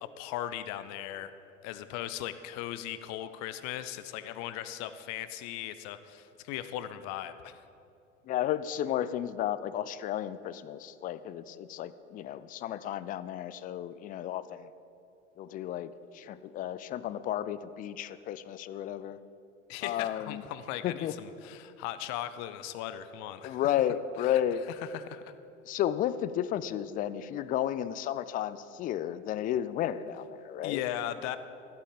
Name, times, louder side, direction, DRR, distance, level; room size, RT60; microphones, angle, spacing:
voice 1, 0.0-1.3 1.6-7.6 19.7-23.7 24.2-24.4 24.9-25.3 30.6-31.4, left 12 dB, 45° left, 12 dB, 0.8 m, -38 dB
voice 2, 8.3-14.7 15.4-19.2 19.8-20.4 20.8-21.1 23.4-24.6 25.7-30.8, left 11 dB, 25° left, 15 dB, 0.4 m, -33 dB
14.5 x 8.4 x 5.2 m, 2.6 s
figure-of-eight pair, 75°, 37 cm